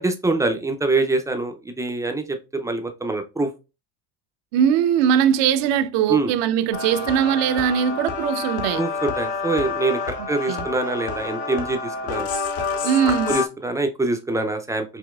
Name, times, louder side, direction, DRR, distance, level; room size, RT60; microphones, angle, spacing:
voice 1, 0.0-3.5 6.1-6.3 8.8-12.3 13.3-15.0, right 2 dB, 5° right, 0.4 m, -24 dB
voice 2, 4.5-8.8 10.5-10.6 12.8-13.4, right 9 dB, 60° right, 0.7 m, -20 dB
sound 1, 6.7-13.5, left 4 dB, 75° left, 1.1 m, -28 dB
5.1 x 2.8 x 2.3 m
supercardioid pair, 105°, 48 cm